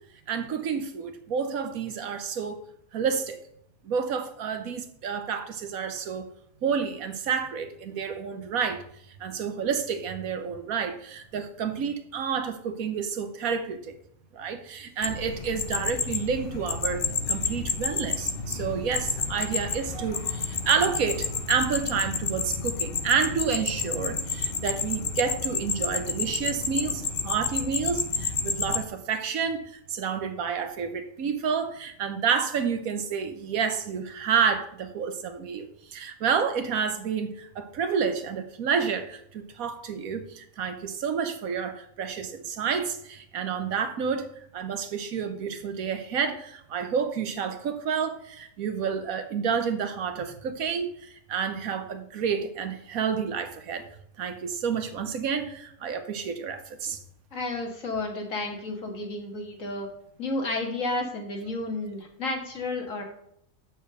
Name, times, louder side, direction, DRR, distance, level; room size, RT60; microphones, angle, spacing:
voice 1, 0.3-2.6 2.9-3.4 3.8-6.2 6.6-8.8 9.2-13.9 14.3-53.9 54.2-57.0, right 6 dB, 90° right, 9 dB, 1.4 m, -29 dB
sound 1, 15.0-28.8, left 5 dB, 45° left, 1.0 m, -30 dB
voice 2, 57.3-59.9 60.2-63.0, left 2 dB, 70° left, 2 dB, 2.2 m, -31 dB
6.8 x 6.2 x 6.7 m, 0.71 s
omnidirectional pair, 1.4 m